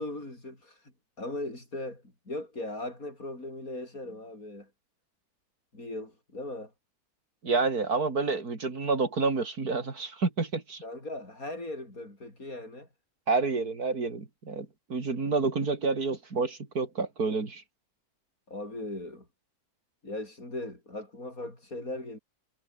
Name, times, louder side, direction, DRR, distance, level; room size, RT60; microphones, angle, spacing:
voice 1, 0.0-4.7 5.7-6.7 10.8-12.9 18.5-19.3 20.0-22.2, left 2 dB, 65° left, 8.2 m, -39 dB
voice 2, 7.4-10.8 13.3-17.6, right 4 dB, 80° right, 3.8 m, -29 dB
omnidirectional pair, 1.6 m